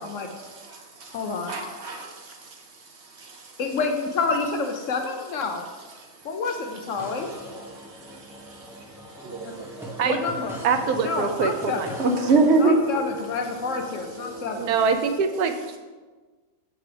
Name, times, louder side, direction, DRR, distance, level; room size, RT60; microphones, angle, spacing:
voice 1, 0.0-1.2 1.5-2.6 3.2-3.4 8.1-8.2 8.5-8.6 9.2-10.0 12.0-12.8, right 3 dB, 55° right, 3 dB, 0.8 m, -25 dB
voice 2, 1.1-1.6 3.6-5.6 6.2-7.3 9.4-9.5 10.1-10.6 11.0-12.0 12.6-14.7, left 4 dB, 65° left, 4 dB, 0.8 m, -28 dB
sound 1, 7.0-14.9, equal, ahead, 0.7 m, -39 dB
voice 3, 10.6-11.9 14.6-15.8, right 5 dB, 80° right, 7 dB, 1.1 m, -24 dB
7.8 x 6.0 x 3.2 m, 1.3 s
omnidirectional pair, 1.6 m